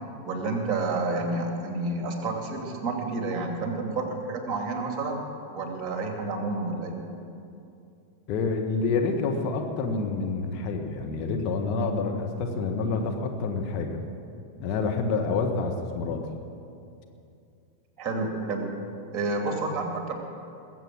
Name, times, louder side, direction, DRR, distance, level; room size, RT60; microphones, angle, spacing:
voice 1, 0.2-5.2 5.5-7.0 18.0-18.7 19.1-20.1, right 3 dB, 30° right, 2 dB, 2.6 m, -29 dB
voice 2, 8.3-14.0 14.6-16.2, left 4 dB, 40° left, 2 dB, 1.4 m, -28 dB
21.0 x 7.9 x 6.3 m, 2.6 s
figure-of-eight pair, 90°, 0 cm